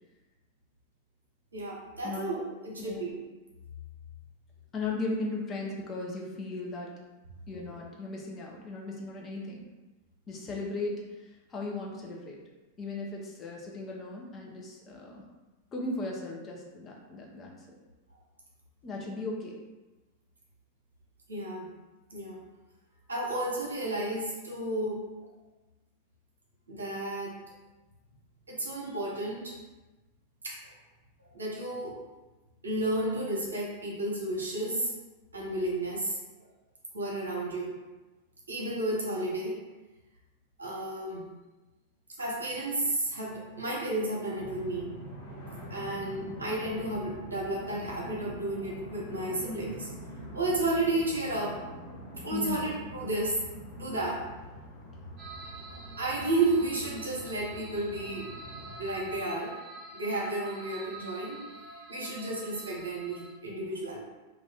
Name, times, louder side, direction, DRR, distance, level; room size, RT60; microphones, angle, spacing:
voice 1, 1.5-2.4 2.6-3.1 21.3-21.7 22.1-22.4 23.1-25.0 26.7-27.3 28.5-29.6 30.4-30.6 31.3-31.9 32.6-34.9 35.3-36.2 36.9-37.7 38.5-39.6 40.6-41.2 42.2-44.9 45.7-49.9 50.3-51.6 52.2-53.4 53.8-54.2 56.0-58.3 58.8-59.5 59.9-61.4 61.9-64.0, right 2 dB, 75° right, -4 dB, 0.8 m, -32 dB
voice 2, 2.8-3.1 4.7-6.9 7.5-9.6 10.3-12.4 12.8-15.2 15.7-17.5 18.8-19.5 52.3-52.7, left 2 dB, 25° left, -2 dB, 0.6 m, -37 dB
sound 1, 44.3-59.2, equal, 60° left, 0.9 m, -44 dB
sound 2, 55.2-63.3, right 3 dB, 25° right, 0.6 m, -47 dB
2.4 x 2.4 x 3.3 m, 1.1 s
figure-of-eight pair, 90°, 0 cm